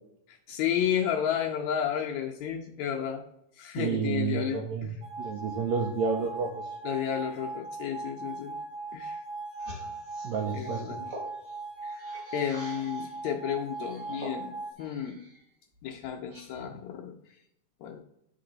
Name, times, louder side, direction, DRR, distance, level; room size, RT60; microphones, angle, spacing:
voice 1, 0.3-3.2 3.6-5.0 6.8-8.6 8.9-9.2 10.5-11.1 11.8-11.9 12.3-14.5 14.8-15.2 15.8-17.1 17.8-18.0, left 9 dB, 80° left, 1 dB, 1.6 m, -32 dB
voice 2, 3.8-4.9 5.2-6.7 10.2-11.0, right 6 dB, 85° right, 3 dB, 1.5 m, -30 dB
sound 1, 5.0-14.7, right 3 dB, 55° right, 1.5 m, -39 dB
sound 2, 9.5-13.2 13.7-15.4 15.8-16.8, equal, 35° right, 3.7 m, -46 dB
11.0 x 3.8 x 3.9 m, 0.79 s
omnidirectional pair, 3.8 m